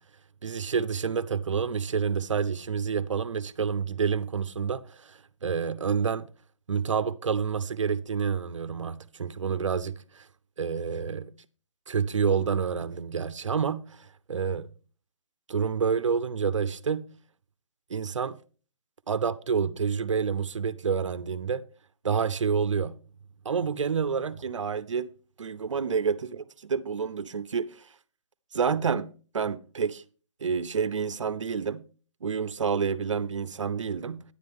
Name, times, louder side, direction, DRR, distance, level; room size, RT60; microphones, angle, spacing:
voice 1, 0.4-6.3 6.7-10.3 10.6-11.3 11.9-14.7 15.5-17.1 17.9-18.4 19.1-21.6 22.0-22.9 23.5-25.1 25.4-27.9 28.5-30.0 30.4-31.8 32.2-34.2, right 6 dB, 75° right, 0.7 m, -28 dB
10.0 x 9.6 x 3.5 m
hypercardioid pair, 165°, 16 cm